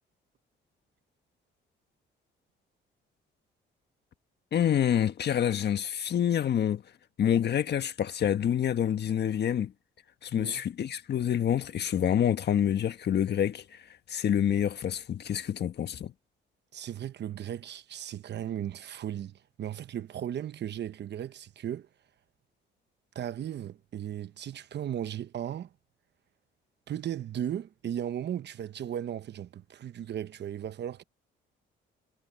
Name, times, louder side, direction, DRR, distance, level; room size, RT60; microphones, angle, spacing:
voice 1, 4.5-6.8 7.2-9.7 10.2-13.6 14.1-16.1, left 9 dB, 55° left, 1.5 m, -27 dB
voice 2, 16.7-21.9 23.1-25.7 26.9-31.0, right 10 dB, 60° right, 1.1 m, -36 dB
cardioid pair, 90°, 20 cm